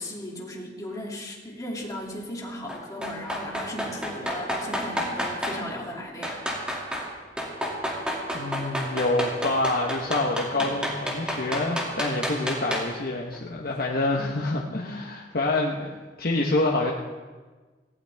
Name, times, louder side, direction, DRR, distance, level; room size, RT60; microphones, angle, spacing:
voice 1, 0.0-6.4 10.6-10.7 14.2-14.4, left 1 dB, 20° left, -2 dB, 2.7 m, -36 dB
sound 1, 2.7-5.6 6.2-7.1 7.4-13.0 13.3-13.4, equal, 5° right, 2.5 m, -30 dB
voice 2, 8.3-16.9, left 2 dB, 55° left, -1 dB, 1.2 m, -27 dB
18.0 x 16.5 x 3.5 m, 1.4 s
head